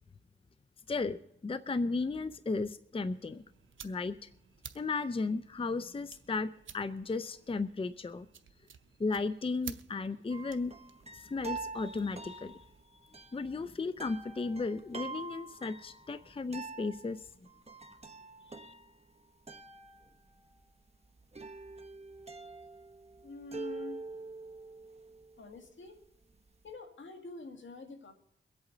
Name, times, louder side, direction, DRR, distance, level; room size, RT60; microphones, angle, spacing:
voice 1, 0.9-3.4 3.8-4.3 4.8-8.3 9.0-10.7 11.1-12.6 13.3-17.3 18.5-18.7, left 3 dB, 30° left, 13 dB, 0.5 m, -35 dB
sound 1, 3.1-12.8, right 7 dB, 80° right, 0.7 m, -54 dB
sound 2, 10.3-26.7, right 3 dB, 30° right, 1.2 m, -46 dB
voice 2, 23.2-24.1 25.4-26.0 26.6-28.1, left 3 dB, 75° left, 4 dB, 1.9 m, -46 dB
23.0 x 8.2 x 3.9 m, 0.77 s
cardioid pair, 60°, 20 cm